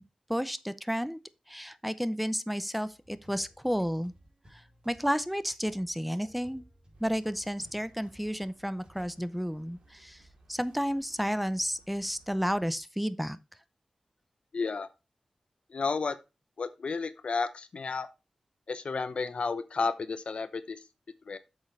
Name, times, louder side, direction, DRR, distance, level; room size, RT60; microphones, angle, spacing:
voice 1, 0.3-1.2 1.5-4.1 4.5-6.6 7.0-10.2 10.5-13.4, equal, 5° right, 0.6 m, -32 dB
sound 1, 2.8-9.2, equal, 45° right, 3.6 m, -59 dB
sound 2, 6.9-12.7, right 2 dB, 85° right, 2.2 m, -61 dB
voice 2, 14.5-14.9 15.7-16.2 16.6-18.1 18.7-20.8 21.3-21.4, left 4 dB, 70° left, 0.7 m, -32 dB
7.9 x 6.5 x 3.3 m
cardioid pair, 45°, 2 cm